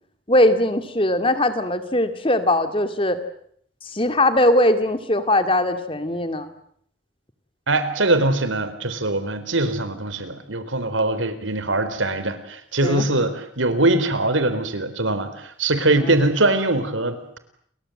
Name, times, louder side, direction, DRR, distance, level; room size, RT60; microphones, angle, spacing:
voice 1, 0.3-3.2 3.8-6.5 12.8-13.1 15.9-16.1, left 1 dB, 25° left, 9 dB, 2.3 m, -20 dB
voice 2, 7.7-17.4, right 2 dB, 90° right, 11 dB, 3.9 m, -22 dB
30.0 x 23.5 x 7.8 m, 0.66 s
head